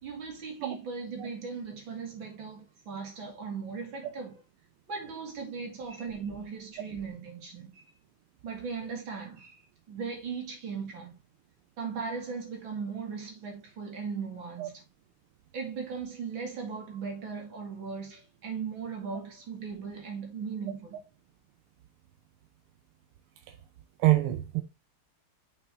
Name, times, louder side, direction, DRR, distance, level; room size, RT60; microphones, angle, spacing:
voice 1, 0.0-4.4 4.9-7.9 8.4-9.6 9.9-11.1 11.8-14.8 15.5-21.0, right 5 dB, 65° right, 2.8 m, -38 dB
voice 2, 24.0-24.6, right 16 dB, 85° right, 1.6 m, -25 dB
6.1 x 5.8 x 3.6 m
omnidirectional pair, 2.4 m